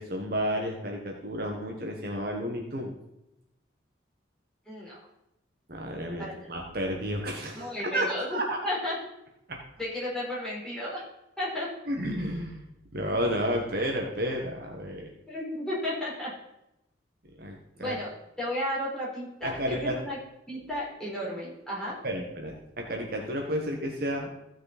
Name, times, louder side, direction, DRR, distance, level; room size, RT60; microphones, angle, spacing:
voice 1, 0.0-2.9 5.7-8.5 9.5-9.6 11.9-12.6 12.9-15.1 17.4-18.0 19.4-20.0 22.0-24.3, equal, 50° right, 1 dB, 1.4 m, -31 dB
voice 2, 6.2-6.5 7.5-9.0 9.8-11.0 11.4-11.7 15.3-16.3 17.8-18.1 18.4-20.2 20.5-22.0, left 1 dB, 5° left, -7 dB, 4.3 m, -33 dB
15.5 x 6.4 x 4.2 m, 0.85 s
head